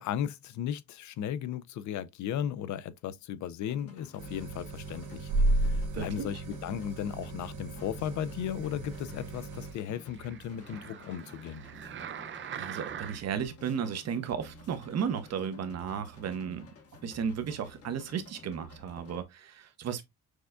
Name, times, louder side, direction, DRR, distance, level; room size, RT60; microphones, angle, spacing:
voice 1, 0.0-5.3 5.6-11.6, left 9 dB, 70° left, 0.5 m, -36 dB
sound 1, 3.7-19.2, left 1 dB, 50° left, 1.0 m, -52 dB
sound 2, 4.2-9.7, right 2 dB, 85° right, 1.1 m, -33 dB
voice 2, 5.9-6.3 12.6-16.7 17.0-20.0, right 7 dB, 60° right, 0.8 m, -34 dB
sound 3, 8.9-13.5 14.1-14.2, right 9 dB, 40° right, 0.5 m, -44 dB
6.1 x 2.4 x 2.2 m
cardioid pair, 90°, 30 cm